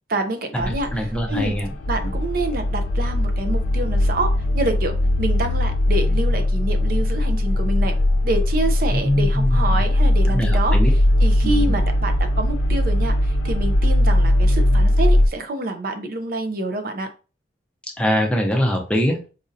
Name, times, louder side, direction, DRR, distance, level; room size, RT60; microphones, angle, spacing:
voice 1, 0.1-0.9 1.3-1.6 1.9-7.9 8.2-10.8 11.2-17.1, right 2 dB, 55° right, 6 dB, 0.4 m, -27 dB
sound 1, 0.6-15.3, left 1 dB, 85° left, 0.5 m, -19 dB
voice 2, 0.9-1.8 2.0-2.1 8.9-9.8 10.3-10.9 11.4-11.7 18.0-19.3, equal, 5° left, 1 dB, 0.5 m, -23 dB
4.1 x 2.5 x 2.5 m, 0.34 s
head